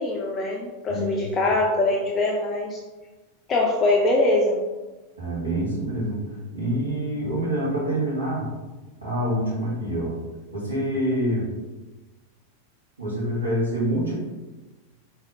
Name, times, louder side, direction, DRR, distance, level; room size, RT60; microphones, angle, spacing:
voice 1, 0.0-2.8 3.5-4.6, left 2 dB, 25° left, -1 dB, 0.4 m, -23 dB
voice 2, 5.2-6.2 6.5-8.5 9.0-10.2 10.5-11.5 13.0-14.2, right 1 dB, 75° right, -5 dB, 1.3 m, -26 dB
4.1 x 2.7 x 2.6 m, 1.2 s
figure-of-eight pair, 90°, 0 cm